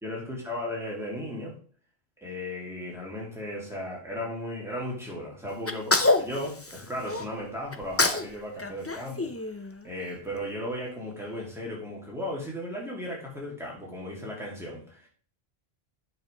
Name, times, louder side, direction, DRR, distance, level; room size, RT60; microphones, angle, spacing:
voice 1, 0.0-1.5 2.2-9.3 9.6-15.1, left 1 dB, 5° right, -4 dB, 3.0 m, -36 dB
Sneeze, 5.7-7.3 7.7-8.3 8.6-10.0, left 2 dB, 15° left, 0.5 m, -26 dB
9.1 x 6.8 x 3.5 m, 0.43 s
omnidirectional pair, 1.1 m